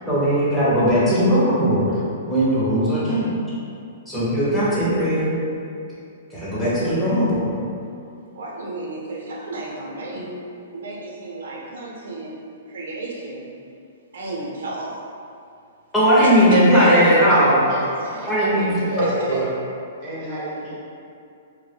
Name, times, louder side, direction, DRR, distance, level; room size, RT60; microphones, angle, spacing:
voice 1, 0.1-2.0 2.3-3.4 4.1-5.4 6.3-7.5 15.9-17.7 18.3-19.0 19.3-19.4, equal, 5° left, -11 dB, 0.6 m, -18 dB
voice 2, 8.3-10.3 10.7-12.4 12.7-13.5 14.1-15.0 16.2-17.1 17.9-18.2 18.9-19.4, right 2 dB, 80° right, -3 dB, 0.6 m, -31 dB
voice 3, 9.9-10.3 16.8-19.0 20.0-20.8, right 1 dB, 35° right, -7 dB, 0.5 m, -32 dB
2.1 x 2.1 x 3.2 m, 2.5 s
hypercardioid pair, 160°, 0 cm